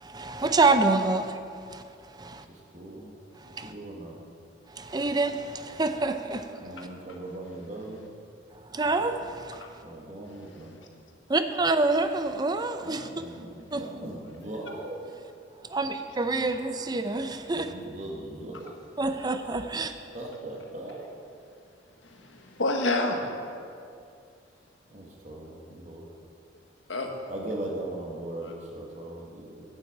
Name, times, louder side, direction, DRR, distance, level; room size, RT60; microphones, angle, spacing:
voice 1, 0.0-1.4 1.7-1.8 2.2-2.4 3.6-3.7 4.8-6.5 8.7-9.6 11.3-13.1 13.7-13.9 15.7-17.7 19.0-19.9, right 3 dB, 20° right, 9 dB, 0.6 m, -26 dB
voice 2, 2.7-3.1 3.6-4.2 6.6-8.0 9.8-10.7 12.8-15.0 17.5-18.7 20.1-21.1 24.9-26.1 27.3-29.6, right 1 dB, 40° right, -1 dB, 1.6 m, -39 dB
voice 3, 6.8-7.2 9.5-9.7 22.0-23.2 26.9-27.1 28.4-28.5, left 2 dB, 80° left, 3 dB, 1.4 m, -29 dB
9.0 x 7.6 x 8.6 m, 2.4 s
head